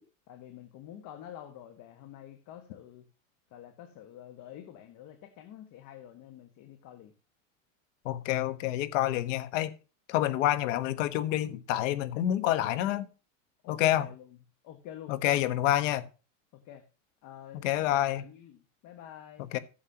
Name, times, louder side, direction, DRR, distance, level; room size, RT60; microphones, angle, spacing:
voice 1, 0.3-3.0 3.5-7.1 13.6-14.3 14.6-15.1 16.5-16.8 17.2-19.5, left 11 dB, 50° left, 1.7 m, -48 dB
voice 2, 8.0-9.7 10.1-13.1 13.7-14.1 15.1-16.0 17.6-18.2 19.5-19.6, left 13 dB, 70° left, 1.3 m, -28 dB
15.5 x 7.3 x 2.9 m
supercardioid pair, 125°, 38 cm